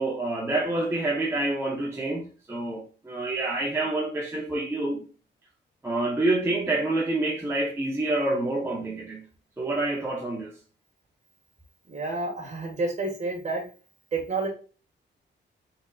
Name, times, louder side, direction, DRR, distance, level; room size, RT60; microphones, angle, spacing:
voice 1, 0.0-5.0 5.8-9.3 9.6-10.5, right 2 dB, 10° right, 0.7 m, -27 dB
voice 2, 11.9-13.6 14.1-14.5, right 3 dB, 35° right, 1.7 m, -29 dB
5.0 x 4.0 x 2.4 m
wide cardioid pair, 160°, 20 cm